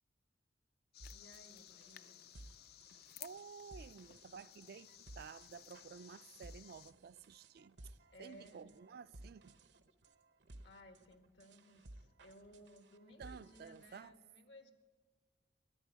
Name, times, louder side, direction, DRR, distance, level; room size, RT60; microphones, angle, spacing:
sound 1, 0.9-6.9, left 12 dB, 60° left, 0.4 m, -57 dB
sound 2, 1.0-14.0, right 1 dB, 80° right, 0.9 m, -58 dB
voice 1, 1.1-2.2 8.1-8.7 10.6-14.7, left 1 dB, 80° left, 1.6 m, -60 dB
voice 2, 3.2-4.9 5.2-7.8 8.2-9.6 13.2-14.2, right 6 dB, 60° right, 0.3 m, -53 dB
13.0 x 10.5 x 9.2 m
head